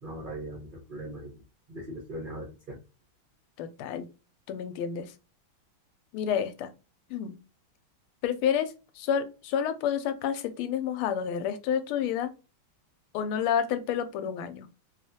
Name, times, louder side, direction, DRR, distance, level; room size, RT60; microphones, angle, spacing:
voice 1, 0.0-1.4 1.7-2.8, right 1 dB, 85° right, -1 dB, 0.4 m, -39 dB
voice 2, 3.6-4.1 4.5-5.1 6.1-6.7 7.1-7.4 8.2-12.3 13.1-14.7, left 8 dB, 90° left, 10 dB, 1.4 m, -29 dB
3.3 x 2.4 x 2.6 m, 0.31 s
omnidirectional pair, 2.3 m